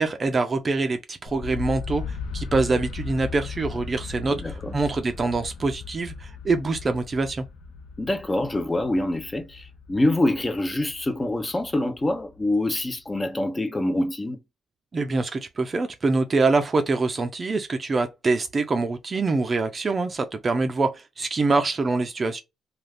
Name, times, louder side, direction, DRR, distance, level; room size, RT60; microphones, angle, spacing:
voice 1, 0.0-7.5 14.9-22.4, right 3 dB, 35° right, 0.4 m, -25 dB
sound 1, 1.3-13.1, left 5 dB, 75° left, 0.5 m, -37 dB
voice 2, 4.3-4.7 8.0-14.4, left 1 dB, 20° left, 0.6 m, -25 dB
2.4 x 2.4 x 3.3 m
cardioid pair, 90°, 0 cm